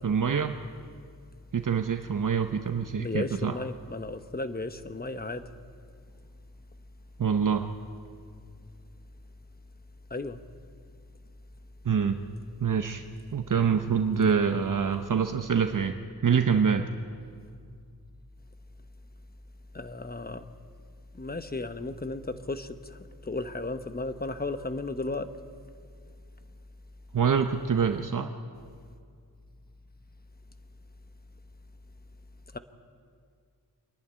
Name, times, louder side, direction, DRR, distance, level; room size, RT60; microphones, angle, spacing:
voice 1, 0.0-0.5 1.5-3.6 7.2-7.7 11.8-12.2 12.6-13.0 13.3-16.0 16.2-16.9 27.1-28.3, right 6 dB, 55° right, 7 dB, 0.8 m, -25 dB
voice 2, 3.0-5.4 10.1-10.4 19.7-20.4 21.1-23.0 23.2-25.3 32.5-32.6, left 2 dB, 25° left, 10 dB, 0.9 m, -34 dB
25.0 x 11.0 x 10.0 m, 2.2 s
wide cardioid pair, 95°, 38 cm